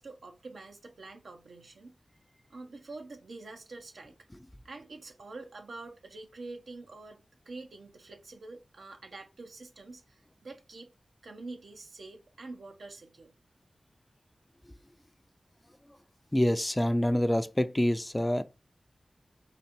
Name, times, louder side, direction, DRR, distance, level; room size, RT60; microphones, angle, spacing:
voice 1, 0.0-1.9 2.5-4.2 4.6-10.9 11.2-13.3, right 3 dB, 90° right, 0.7 m, -46 dB
voice 2, 16.3-18.4, left 1 dB, 15° left, 0.4 m, -26 dB
4.2 x 2.6 x 4.2 m
cardioid pair, 50°, 0 cm